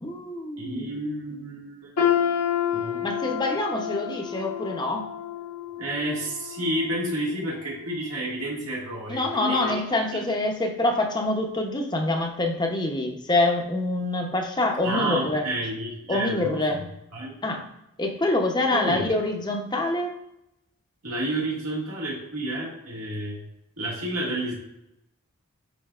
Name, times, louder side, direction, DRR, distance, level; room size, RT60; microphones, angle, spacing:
voice 1, 0.0-0.9 3.0-5.1 9.1-15.4 16.1-16.9 17.4-17.6 18.0-20.1, left 2 dB, 20° left, 3 dB, 0.7 m, -26 dB
voice 2, 0.6-1.9 2.7-3.0 5.8-9.8 10.1-10.4 14.8-16.6 17.1-17.4 18.7-19.0 21.0-23.4 23.8-24.5, right 1 dB, 75° right, -5 dB, 1.8 m, -30 dB
sound 1, 2.0-7.9 8.3-8.5 9.3-9.4, left 9 dB, 85° left, 1.2 m, -29 dB
10.5 x 3.9 x 2.4 m, 0.85 s
head